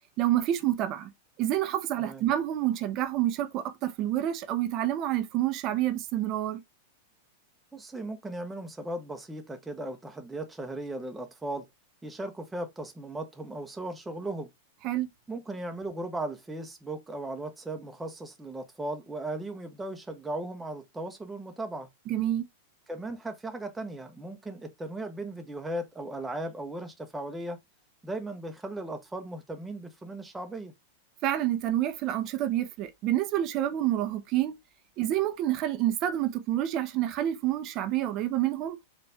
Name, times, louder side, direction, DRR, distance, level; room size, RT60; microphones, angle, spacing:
voice 1, 0.2-1.1 1.4-6.6 14.8-15.1 22.1-22.5 31.2-34.6 35.0-38.8, right 12 dB, 45° right, 0.7 m, -28 dB
voice 2, 7.7-11.7 12.0-14.5 15.3-21.9 22.9-27.6 28.0-30.7, right 1 dB, 10° right, 0.9 m, -37 dB
4.3 x 2.6 x 3.4 m
hypercardioid pair, 100°, 0 cm